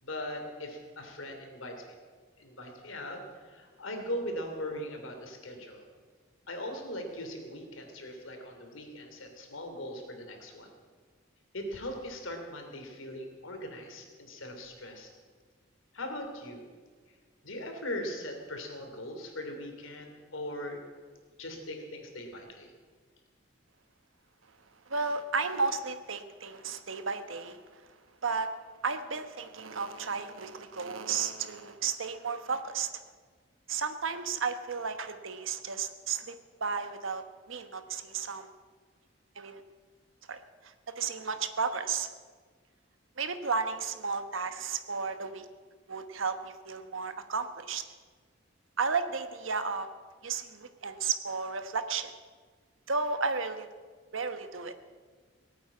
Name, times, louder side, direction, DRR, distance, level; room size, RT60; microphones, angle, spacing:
voice 1, 0.0-1.8 2.4-5.8 6.5-10.7 11.5-15.1 15.9-16.6 17.4-20.8 21.4-22.7, left 1 dB, 85° left, 4 dB, 3.0 m, -40 dB
voice 2, 24.9-27.8 28.2-28.5 28.8-32.9 33.7-38.5 39.4-39.6 40.3-42.1 43.2-45.5 45.9-47.8 48.8-49.9 50.2-52.1 52.9-53.7 54.1-54.7, right 5 dB, 80° right, 9 dB, 1.1 m, -33 dB
18.5 x 8.8 x 8.6 m, 1.5 s
head